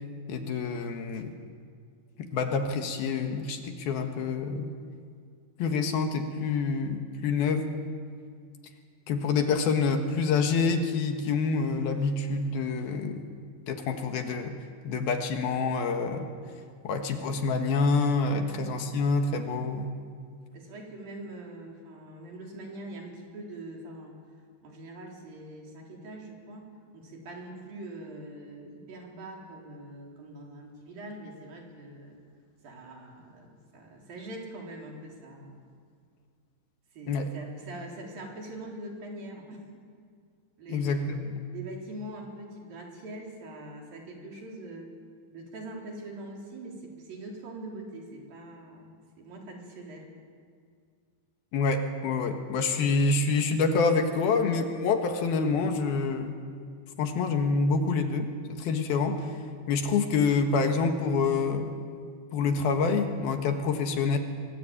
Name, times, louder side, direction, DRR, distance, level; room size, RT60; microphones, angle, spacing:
voice 1, 0.3-1.3 2.2-4.7 5.6-7.7 9.1-13.3 13.7-14.5 14.8-16.3 16.8-19.9 37.1-37.3 40.7-41.4 51.5-56.3 57.0-59.4 59.7-61.8 62.3-64.2, left 4 dB, 70° left, 5 dB, 3.3 m, -27 dB
voice 2, 20.5-24.2 24.6-26.7 26.9-32.2 32.6-35.6 36.9-39.6 40.6-41.2 41.5-44.9 45.3-50.1, right 1 dB, 60° right, -1 dB, 5.5 m, -43 dB
24.0 x 23.5 x 8.8 m, 2.1 s
omnidirectional pair, 4.7 m